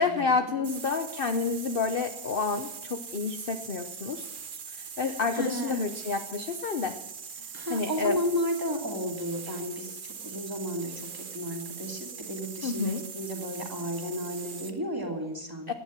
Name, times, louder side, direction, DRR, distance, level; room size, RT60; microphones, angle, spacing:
voice 1, 0.0-4.3 4.7-7.0 7.7-8.2 12.6-13.0 15.7-15.8, left 4 dB, 40° left, 7 dB, 0.9 m, -29 dB
sound 1, 0.6-14.8, right 6 dB, 40° right, 0.8 m, -42 dB
voice 2, 5.0-5.7 7.5-15.7, equal, 15° right, 1 dB, 2.7 m, -33 dB
17.5 x 10.5 x 7.5 m, 0.85 s
omnidirectional pair, 1.6 m